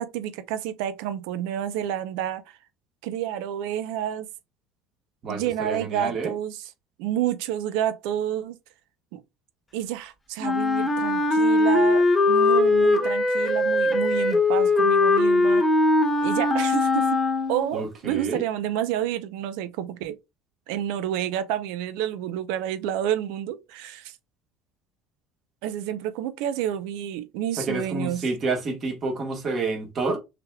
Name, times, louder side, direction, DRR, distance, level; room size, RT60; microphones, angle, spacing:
voice 1, 0.0-2.6 3.0-4.3 5.3-6.7 7.0-8.6 9.1-9.2 9.7-15.7 16.2-17.2 17.5-20.2 20.7-24.2 25.6-28.2, right 11 dB, 70° right, 0.7 m, -29 dB
voice 2, 5.2-6.3 17.7-18.4 27.6-30.2, right 3 dB, 25° right, 1.4 m, -29 dB
Wind instrument woodwind instrument, 10.4-17.8, left 2 dB, 10° left, 0.6 m, -21 dB
5.9 x 3.4 x 2.3 m
cardioid pair, 180°, 0 cm